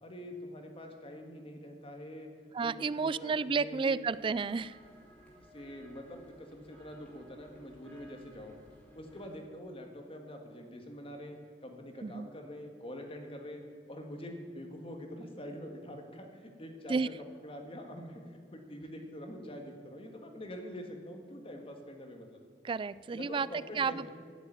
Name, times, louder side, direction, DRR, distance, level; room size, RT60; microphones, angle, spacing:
voice 1, 0.0-2.3 2.6-4.0 5.5-8.6 8.9-13.6 13.9-17.1 17.4-22.4 23.1-24.1, equal, 35° left, 3 dB, 1.7 m, -45 dB
voice 2, 2.5-4.8 12.0-12.3 16.9-17.1 22.6-23.5 23.8-24.1, right 5 dB, 30° right, 18 dB, 0.3 m, -31 dB
sound 1, 4.1-9.4, left 1 dB, 5° left, 2.9 m, -58 dB
13.5 x 7.1 x 9.4 m, 2.1 s
head